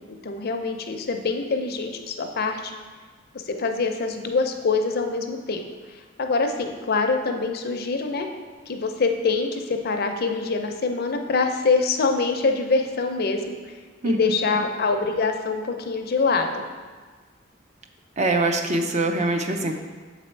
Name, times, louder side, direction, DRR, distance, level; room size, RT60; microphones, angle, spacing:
voice 1, 0.2-2.7 3.3-5.6 6.2-8.3 8.7-13.6 14.0-16.7, left 4 dB, 55° left, 5 dB, 0.5 m, -24 dB
voice 2, 18.2-19.7, right 2 dB, 40° right, 4 dB, 0.5 m, -23 dB
7.0 x 4.2 x 4.4 m, 1.4 s
head